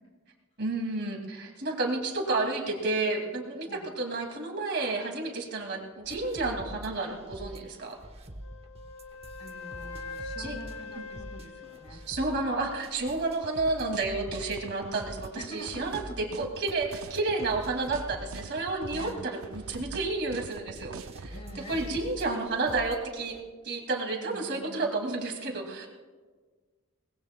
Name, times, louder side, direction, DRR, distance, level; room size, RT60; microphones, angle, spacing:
voice 1, 0.6-8.0 10.4-10.6 12.1-21.3 21.7-23.4 23.6-25.9, right 3 dB, 55° right, 1 dB, 2.3 m, -31 dB
sound 1, 6.0-23.4, right 1 dB, 30° right, 1.0 m, -45 dB
Wind instrument woodwind instrument, 8.4-12.6, left 4 dB, 90° left, 0.8 m, -43 dB
voice 2, 9.4-12.1 15.3-16.5 18.9-19.3 21.3-22.0 24.1-24.8, equal, 30° left, 3 dB, 2.3 m, -45 dB
sound 2, 13.4-21.3, right 5 dB, 70° right, 0.5 m, -43 dB
23.5 x 20.0 x 2.2 m, 1.4 s
head